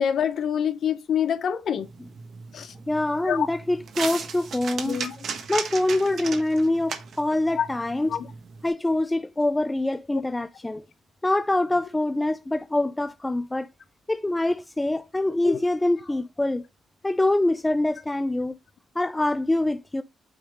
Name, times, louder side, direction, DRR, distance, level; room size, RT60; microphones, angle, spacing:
voice 1, 0.0-1.9 2.5-2.7 3.2-3.5 4.9-5.2 7.6-7.7 8.1-8.3 15.4-15.6, left 8 dB, 60° left, 0.7 m, -26 dB
sound 1, 1.8-8.7, right 6 dB, 60° right, 1.3 m, -37 dB
voice 2, 2.9-5.0 5.5-8.1 8.6-10.8 11.2-13.7 14.1-16.6 17.0-18.6 19.0-20.0, left 2 dB, 15° left, 0.4 m, -25 dB
8.6 x 3.1 x 5.1 m
cardioid pair, 90°, 0 cm